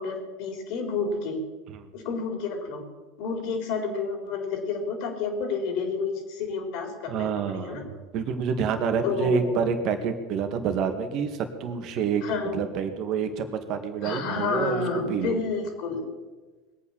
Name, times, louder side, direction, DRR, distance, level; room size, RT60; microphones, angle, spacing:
voice 1, 0.0-1.4 1.9-2.8 3.2-7.8 9.0-9.6 12.2-12.6 14.0-16.0, left 4 dB, 55° left, 4 dB, 3.8 m, -30 dB
voice 2, 7.1-7.8 8.1-12.2 12.5-14.8 15.1-15.4, right 6 dB, 50° right, 7 dB, 2.1 m, -27 dB
20.5 x 8.7 x 7.4 m, 1.3 s
figure-of-eight pair, 80°, 0 cm